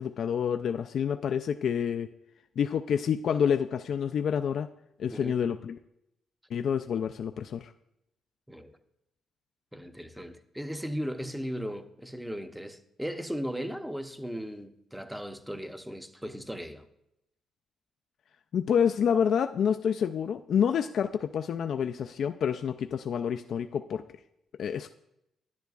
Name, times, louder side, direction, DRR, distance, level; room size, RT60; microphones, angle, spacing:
voice 1, 0.0-2.1 2.6-4.7 5.0-5.8 6.5-7.7 18.5-24.0 24.6-24.9, left 7 dB, 65° left, 0.3 m, -28 dB
voice 2, 9.7-16.9, equal, 5° right, 0.6 m, -37 dB
10.5 x 10.0 x 2.4 m
cardioid pair, 90°, 0 cm